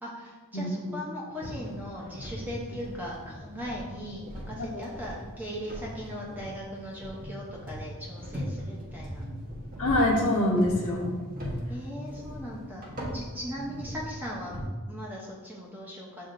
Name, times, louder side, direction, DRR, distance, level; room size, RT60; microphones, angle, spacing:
voice 1, 0.0-9.2 9.9-10.1 11.7-12.8 13.1-14.6 14.9-16.3, equal, 10° right, -4 dB, 0.6 m, -39 dB
voice 2, 0.5-1.0 4.6-4.8 9.8-11.1, left 1 dB, 85° left, -4 dB, 0.9 m, -25 dB
sound 1, 1.4-14.7, equal, 40° right, 1.0 m, -39 dB
7.8 x 2.7 x 2.5 m, 1.3 s
head